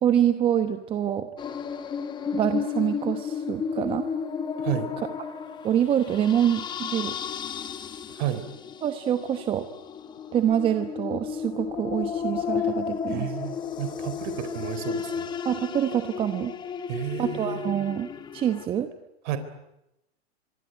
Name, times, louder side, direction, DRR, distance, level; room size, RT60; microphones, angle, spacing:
voice 1, 0.0-1.3 2.3-4.1 5.6-7.1 8.8-9.6 10.3-13.3 15.4-16.5 17.2-18.9, right 10 dB, 15° right, 9 dB, 1.0 m, -26 dB
sound 1, 1.4-18.6, left 7 dB, 15° left, 1.3 m, -33 dB
voice 2, 4.6-4.9 8.1-8.5 12.6-12.7 13.1-15.3 16.9-17.7 19.2-19.4, right 11 dB, 45° right, 10 dB, 4.1 m, -32 dB
25.0 x 25.0 x 9.2 m, 0.87 s
hypercardioid pair, 155°, 33 cm